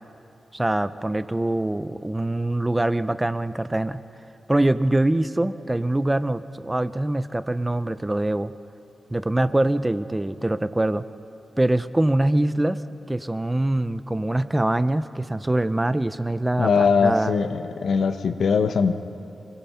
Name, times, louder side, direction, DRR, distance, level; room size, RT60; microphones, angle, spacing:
voice 1, 0.5-4.0 4.5-8.5 9.1-11.0 11.6-12.8 13.1-17.3, right 1 dB, 15° right, 13 dB, 0.5 m, -23 dB
voice 2, 16.6-18.9, left 5 dB, 85° left, 7 dB, 1.0 m, -21 dB
26.0 x 18.0 x 5.7 m, 2.7 s
wide cardioid pair, 125°, 0 cm